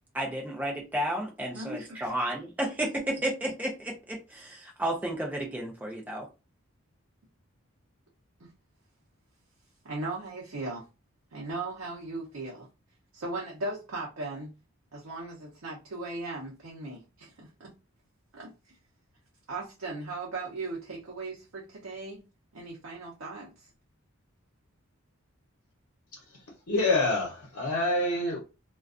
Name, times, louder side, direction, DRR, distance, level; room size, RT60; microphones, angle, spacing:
voice 1, 0.1-6.3, right 1 dB, 10° right, 0.4 m, -32 dB
voice 2, 1.5-2.1 8.4-8.5 9.8-10.8 11.3-12.7 13.1-14.5 14.9-17.7 18.3-18.5 19.5-22.3 22.5-23.7, right 2 dB, 75° right, 0.6 m, -38 dB
voice 3, 26.7-28.4, left 2 dB, 85° left, 0.8 m, -26 dB
2.4 x 2.2 x 2.4 m
head